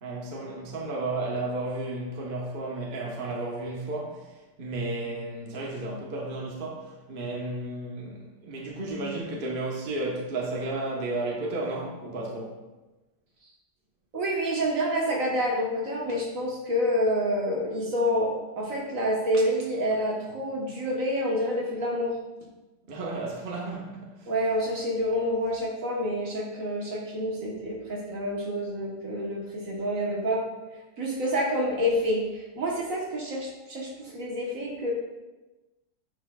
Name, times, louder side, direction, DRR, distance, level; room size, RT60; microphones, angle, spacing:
voice 1, 0.0-4.2 4.6-12.6 22.9-24.3, right 2 dB, 35° right, -3 dB, 1.1 m, -33 dB
voice 2, 14.1-22.1 24.3-30.4 31.0-34.9, equal, 55° right, -2 dB, 1.5 m, -28 dB
8.9 x 5.8 x 2.3 m, 1.1 s
omnidirectional pair, 1.8 m